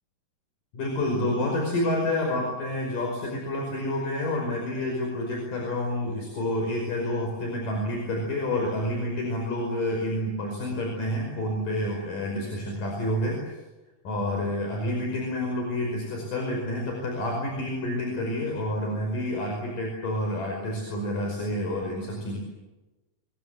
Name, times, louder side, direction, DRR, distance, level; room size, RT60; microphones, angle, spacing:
voice 1, 0.7-13.4 14.1-22.4, left 1 dB, 75° left, 0 dB, 7.0 m, -29 dB
26.0 x 24.5 x 8.3 m, 1.1 s
omnidirectional pair, 3.9 m